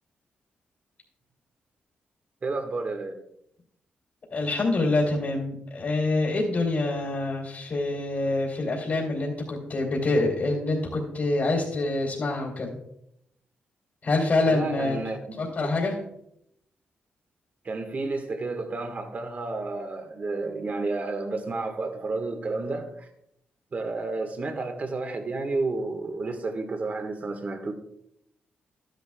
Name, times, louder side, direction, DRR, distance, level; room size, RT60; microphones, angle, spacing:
voice 1, 2.4-3.2 14.4-15.4 15.6-15.7 17.6-23.1 23.7-27.7, right 3 dB, 45° right, 6 dB, 1.4 m, -31 dB
voice 2, 4.3-12.8 14.0-15.0 15.4-16.0, left 2 dB, 55° left, -3 dB, 2.8 m, -26 dB
12.5 x 10.5 x 2.3 m, 0.75 s
cardioid pair, 95°, 4 cm